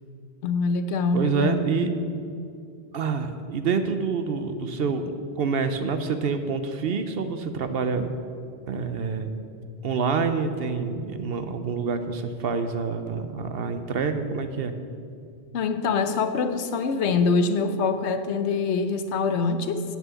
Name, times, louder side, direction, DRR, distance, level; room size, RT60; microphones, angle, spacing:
voice 1, 0.4-2.1 15.5-19.8, left 4 dB, 75° left, 9 dB, 1.0 m, -24 dB
voice 2, 1.1-1.9 2.9-8.1 8.7-9.3 9.8-14.7, right 5 dB, 60° right, 9 dB, 0.8 m, -27 dB
8.9 x 7.2 x 6.9 m, 2.4 s
omnidirectional pair, 1.2 m